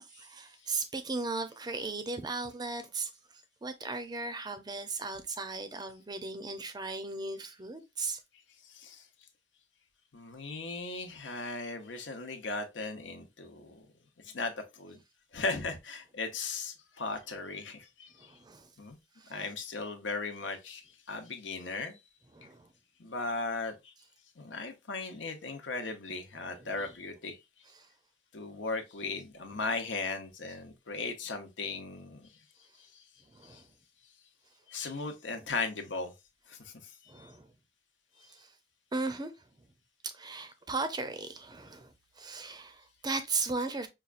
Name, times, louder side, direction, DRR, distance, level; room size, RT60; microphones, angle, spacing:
voice 1, 0.0-8.2 18.2-18.7 19.2-19.3 22.3-22.7 26.6-26.9 27.7-27.9 33.3-33.7 37.1-37.5 38.3-38.5 38.9-39.3 39.6-39.7 40.0-43.9, right 3 dB, 25° right, 0.5 m, -37 dB
voice 2, 10.1-13.9 14.3-15.0 15.3-18.3 18.8-19.0 19.3-20.8 21.1-22.0 23.0-23.9 24.4-27.4 28.3-32.3 33.4-33.6 34.7-36.1 36.5-36.7 37.2-37.3, left 3 dB, 85° left, 0.8 m, -37 dB
5.5 x 2.3 x 2.4 m
head